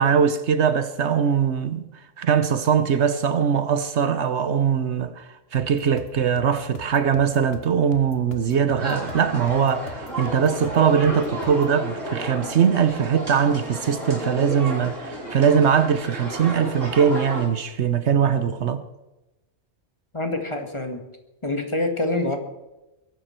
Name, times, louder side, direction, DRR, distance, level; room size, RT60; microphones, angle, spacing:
voice 1, 0.0-1.9 2.2-18.8, right 7 dB, 70° right, 1.1 m, -21 dB
sound 1, 5.6-11.8, left 4 dB, 55° left, 1.5 m, -42 dB
sound 2, 8.8-17.5, right 1 dB, 90° right, 3.9 m, -32 dB
voice 2, 20.1-21.0 21.4-22.4, left 2 dB, 25° left, 1.7 m, -26 dB
22.0 x 11.5 x 4.4 m
omnidirectional pair, 1.2 m